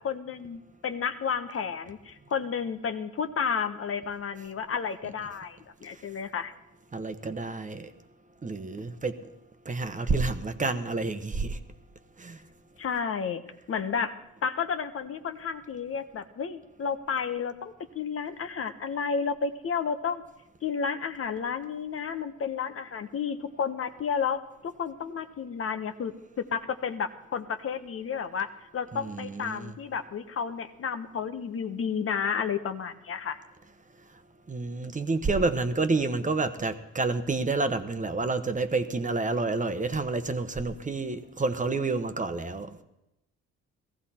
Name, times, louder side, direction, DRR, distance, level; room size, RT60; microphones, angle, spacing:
voice 1, 0.0-6.5 12.8-13.4 13.7-14.1 14.4-20.2 20.6-33.4, left 6 dB, 50° left, 1.0 m, -32 dB
voice 2, 6.9-7.9 8.4-9.2 9.6-11.6 12.2-12.4 28.9-29.8 34.5-42.7, right 3 dB, 25° right, 1.1 m, -29 dB
16.5 x 15.0 x 4.3 m
cardioid pair, 90°, 30 cm